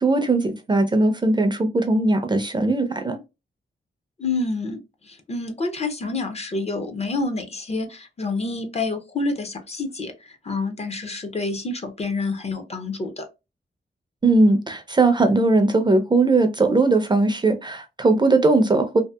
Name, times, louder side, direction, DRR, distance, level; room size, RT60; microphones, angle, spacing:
voice 1, 0.0-3.2 14.2-19.0, right 2 dB, 25° right, 0.4 m, -19 dB
voice 2, 4.2-4.8 5.0-13.3, left 3 dB, 35° left, 0.5 m, -28 dB
2.6 x 2.4 x 2.2 m
wide cardioid pair, 125°, 19 cm